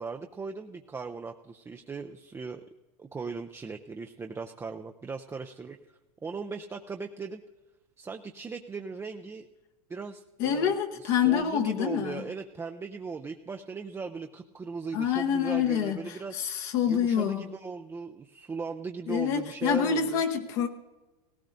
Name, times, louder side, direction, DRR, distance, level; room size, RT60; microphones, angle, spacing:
voice 1, 0.0-2.6 3.0-5.8 6.2-7.4 8.0-9.5 9.9-16.4 16.9-20.2, right 4 dB, 15° right, 4 dB, 0.4 m, -38 dB
voice 2, 10.4-12.2 14.9-17.4 19.1-20.7, left 8 dB, 55° left, 5 dB, 1.0 m, -27 dB
17.5 x 17.0 x 2.6 m, 1.2 s
hypercardioid pair, 100°, 20 cm